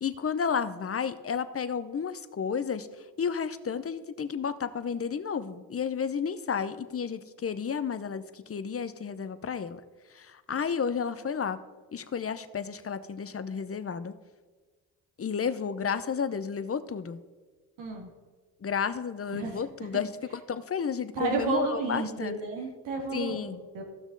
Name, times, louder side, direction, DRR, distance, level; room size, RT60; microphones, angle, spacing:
voice 1, 0.0-2.9 3.2-9.8 10.1-11.6 11.9-14.1 15.2-17.2 18.6-22.3 23.1-23.6, left 6 dB, 35° left, 12 dB, 0.8 m, -32 dB
voice 2, 17.8-18.1 19.3-19.6 21.1-23.8, right 4 dB, 85° right, 0 dB, 2.1 m, -32 dB
15.5 x 6.1 x 4.0 m, 1.3 s
supercardioid pair, 55°, 42 cm